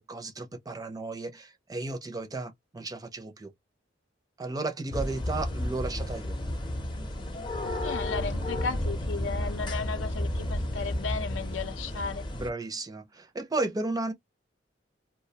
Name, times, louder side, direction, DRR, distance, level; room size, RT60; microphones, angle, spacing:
voice 1, 0.1-3.5 4.4-6.3 12.3-14.1, right 2 dB, 20° right, 0.4 m, -34 dB
sound 1, 4.9-12.5, left 1 dB, 25° left, 0.6 m, -32 dB
voice 2, 7.8-12.2, left 5 dB, 75° left, 0.5 m, -35 dB
2.3 x 2.1 x 2.7 m
head